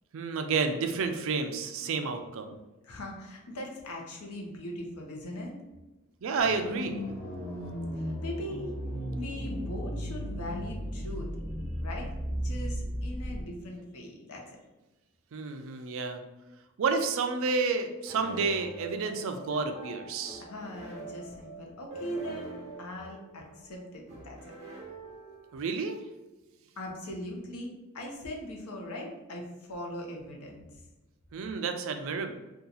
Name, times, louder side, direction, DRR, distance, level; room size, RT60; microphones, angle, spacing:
voice 1, 0.1-2.6 6.2-7.1 15.3-16.2 16.8-20.4 25.5-26.0 31.3-32.3, right 4 dB, 60° right, 6 dB, 0.4 m, -30 dB
voice 2, 2.8-5.6 7.4-8.7 9.1-11.3 11.8-14.6 20.5-24.5 26.8-30.8, left 1 dB, 85° left, 0 dB, 0.7 m, -40 dB
sound 1, 6.4-13.4, equal, 10° left, 0.7 m, -35 dB
sound 2, 18.1-25.7, right 2 dB, 30° right, 0.9 m, -45 dB
2.8 x 2.3 x 3.8 m, 1.1 s
head